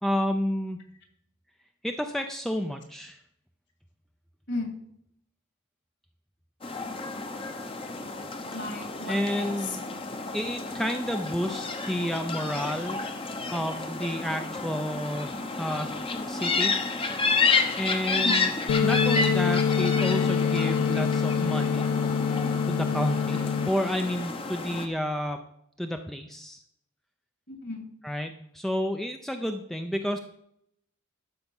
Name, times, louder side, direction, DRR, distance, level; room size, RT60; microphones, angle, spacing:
voice 1, 0.0-0.8 1.8-3.2 9.1-9.8 10.3-15.3 15.6-16.0 16.3-16.8 17.8-18.5 18.8-21.9 22.7-25.4 25.8-26.6 28.0-30.2, equal, ahead, 5 dB, 0.5 m, -30 dB
voice 2, 4.5-4.8 8.5-9.8 18.1-18.4 27.5-27.9, left 2 dB, 55° left, 4 dB, 2.5 m, -35 dB
sound 1, 6.6-24.9, left 4 dB, 25° left, 0.8 m, -30 dB
sound 2, 18.7-23.7, left 6 dB, 75° left, 0.3 m, -25 dB
12.5 x 5.0 x 7.1 m, 0.72 s
head